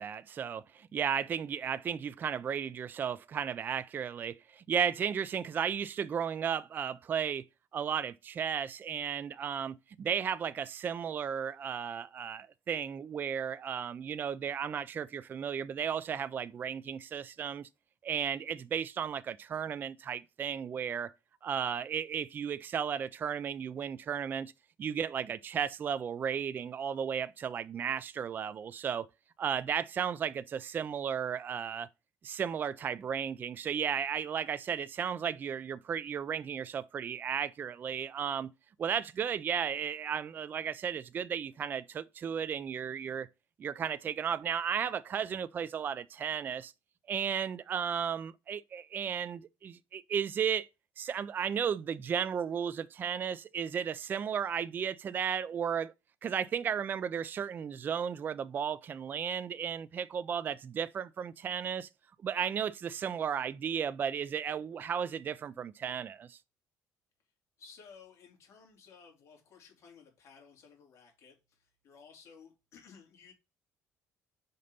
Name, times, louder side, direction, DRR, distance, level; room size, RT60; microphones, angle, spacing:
voice 1, 0.0-7.4 7.7-17.7 18.0-21.1 21.4-24.5 24.8-29.1 29.4-31.9 32.2-38.5 38.8-43.3 43.6-46.7 47.1-50.7 51.0-55.9 56.2-61.9 62.2-66.4, right 7 dB, 35° right, 0.3 m, -34 dB
voice 2, 67.6-73.3, left 6 dB, 50° left, 2.9 m, -56 dB
5.2 x 3.9 x 5.5 m
cardioid pair, 130°, 6 cm